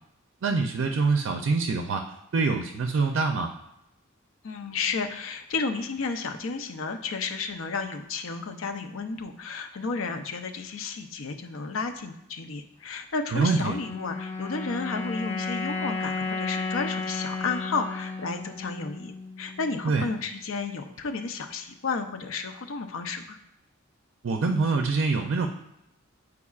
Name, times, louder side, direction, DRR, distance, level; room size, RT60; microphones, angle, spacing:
voice 1, 0.4-2.0 2.3-3.5 13.3-13.7 19.8-20.1 24.2-25.5, right 4 dB, 65° right, 4 dB, 0.4 m, -25 dB
voice 2, 4.4-23.4, left 4 dB, 75° left, 6 dB, 0.6 m, -32 dB
sound 1, 13.6-20.0, left 4 dB, 30° left, 0.6 m, -33 dB
8.3 x 4.7 x 2.4 m, 0.84 s
head